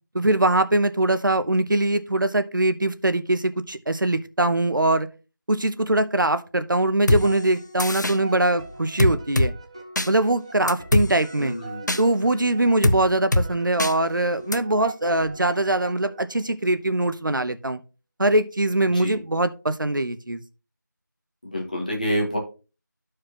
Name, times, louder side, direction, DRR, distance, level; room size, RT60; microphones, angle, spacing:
voice 1, 0.1-5.1 5.5-9.5 10.1-11.5 12.0-17.8 18.2-20.4, right 1 dB, 80° right, 11 dB, 0.8 m, -22 dB
sound 1, 7.1-7.2 7.8-8.2 9.0-9.5 10.0-10.1 10.7-11.1 11.9-12.0 12.8-13.0 13.3-13.5 13.8-13.9 14.5-14.6, left 1 dB, 65° left, 0.8 m, -20 dB
sound 2, 7.2-16.5, right 3 dB, 15° right, 0.7 m, -41 dB
voice 2, 11.4-12.0 18.9-19.2 21.4-22.4, equal, 25° left, -1 dB, 1.6 m, -28 dB
13.0 x 4.8 x 2.9 m, 0.32 s
figure-of-eight pair, 175°, 11 cm